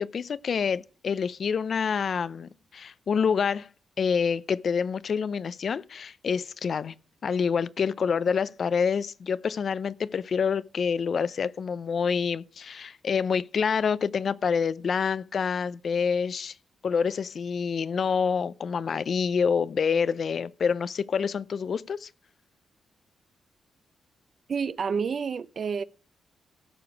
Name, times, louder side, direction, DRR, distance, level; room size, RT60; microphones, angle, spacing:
voice 1, 0.0-3.7 4.0-6.9 7.2-16.5 16.8-22.1, left 6 dB, 55° left, 0.5 m, -27 dB
voice 2, 24.5-25.8, right 6 dB, 50° right, 0.4 m, -29 dB
16.5 x 6.9 x 4.6 m
cardioid pair, 110°, 0 cm